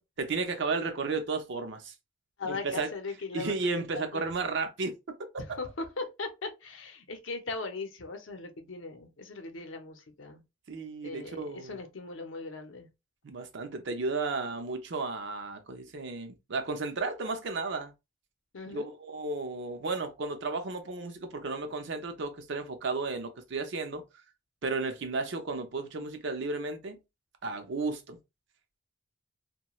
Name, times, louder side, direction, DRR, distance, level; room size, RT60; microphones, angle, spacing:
voice 1, 0.2-1.9 2.4-2.9 3.3-4.9 10.7-11.8 13.2-17.9 18.7-24.0 24.6-27.0 27.4-28.2, right 3 dB, 65° right, 0.6 m, -33 dB
voice 2, 2.4-3.6 3.9-4.2 5.5-10.4 11.0-12.9 18.5-18.9, left 3 dB, 80° left, 0.7 m, -39 dB
2.3 x 2.2 x 2.9 m
head